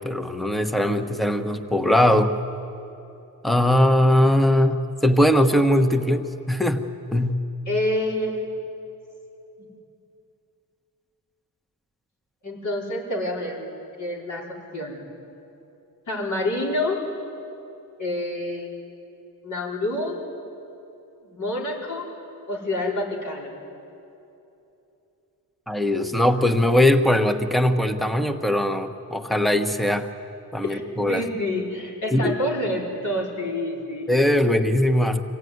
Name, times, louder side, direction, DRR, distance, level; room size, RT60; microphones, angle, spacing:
voice 1, 0.0-2.3 3.4-7.4 25.7-30.1 30.5-31.2 32.1-32.3 34.1-35.2, left 1 dB, ahead, 7 dB, 1.2 m, -20 dB
voice 2, 7.7-8.5 12.4-15.0 16.1-17.0 18.0-18.7 19.4-20.2 21.2-22.1 22.5-23.6 30.6-30.8 31.1-34.1, left 1 dB, 60° left, -3 dB, 5.1 m, -28 dB
25.5 x 17.0 x 9.5 m, 2.8 s
cardioid pair, 100°, 34 cm